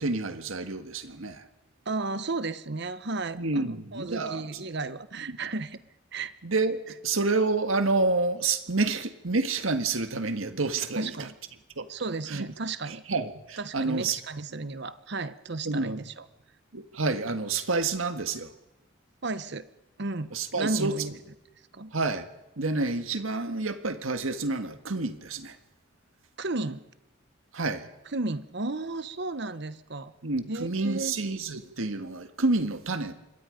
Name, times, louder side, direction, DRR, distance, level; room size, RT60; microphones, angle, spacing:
voice 1, 0.0-1.4 3.3-4.4 5.3-5.4 6.4-11.3 11.8-11.9 12.3-12.5 13.1-14.2 15.6-16.0 16.7-18.5 20.3-20.9 21.9-22.2 22.6-25.5 27.5-27.9 30.2-33.1, right 3 dB, 90° right, 8 dB, 1.7 m, -28 dB
voice 2, 1.9-5.8 6.1-6.3 11.0-11.3 11.9-13.0 13.6-16.2 19.2-19.7 20.0-21.1 21.7-21.9 26.4-26.9 28.1-30.1 30.5-31.2, right 3 dB, 55° right, 13 dB, 1.0 m, -33 dB
26.0 x 22.0 x 5.2 m, 0.95 s
head